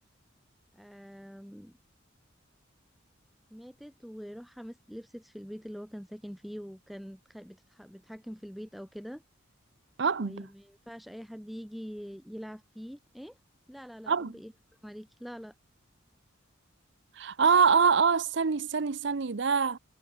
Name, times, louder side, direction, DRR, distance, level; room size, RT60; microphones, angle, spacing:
voice 1, 0.7-1.7 3.5-9.2 10.2-13.4 13.7-14.5 14.8-15.5, equal, ahead, 3.3 m, -44 dB
voice 2, 10.0-10.5 14.1-14.4 17.1-19.8, right 5 dB, 60° right, 0.7 m, -25 dB
head